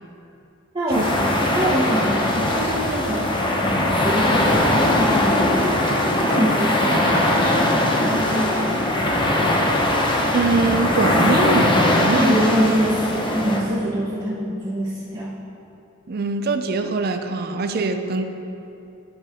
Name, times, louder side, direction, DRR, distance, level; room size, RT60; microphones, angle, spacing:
voice 1, 0.7-8.9 12.1-15.3, equal, 25° right, -10 dB, 1.0 m, -25 dB
sound 1, 0.9-13.6, left 1 dB, 25° left, 0.8 m, -20 dB
voice 2, 10.3-12.4 16.1-18.3, right 3 dB, 50° right, 7 dB, 0.5 m, -22 dB
11.5 x 5.1 x 3.7 m, 2.7 s
head